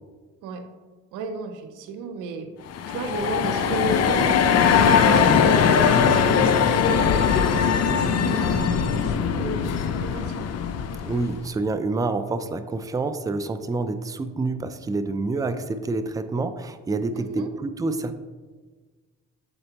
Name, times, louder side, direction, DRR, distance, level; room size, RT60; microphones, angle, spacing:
voice 1, 1.1-2.5 2.9-10.5 17.2-17.5, right 3 dB, 80° right, 8 dB, 0.7 m, -33 dB
sound 1, 2.7-11.4, left 7 dB, 55° left, 0.6 m, -20 dB
voice 2, 11.1-18.2, right 3 dB, 10° right, 10 dB, 0.4 m, -27 dB
7.7 x 4.3 x 2.8 m, 1.4 s
supercardioid pair, 70°, 31 cm